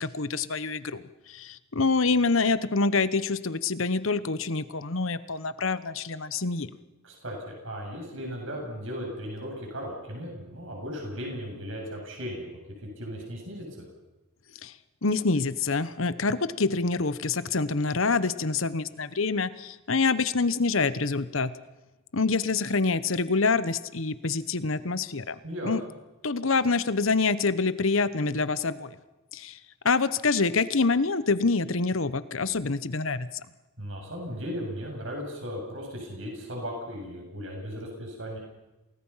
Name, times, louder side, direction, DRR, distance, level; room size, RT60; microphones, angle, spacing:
voice 1, 0.0-6.7 14.6-14.7 15.0-21.5 22.1-25.8 26.2-29.0 29.3-29.6 29.8-33.3, left 4 dB, 75° left, 14 dB, 1.1 m, -26 dB
voice 2, 7.0-7.4 7.6-13.8 25.4-25.7 33.8-38.4, equal, 70° right, 0 dB, 7.7 m, -36 dB
28.5 x 19.0 x 5.8 m, 1.1 s
head